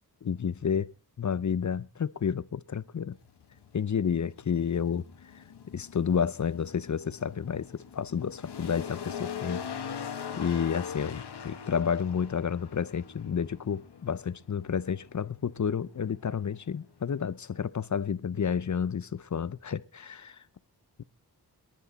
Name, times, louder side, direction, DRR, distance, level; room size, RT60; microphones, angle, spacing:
voice 1, 0.2-0.9 1.2-3.2 3.7-5.0 5.7-9.6 10.4-20.4 21.0-21.1, left 7 dB, 45° left, 0.7 m, -30 dB
sound 1, 3.1-17.6, left 7 dB, 85° left, 1.5 m, -42 dB
26.0 x 10.5 x 4.1 m
wide cardioid pair, 75°, 39 cm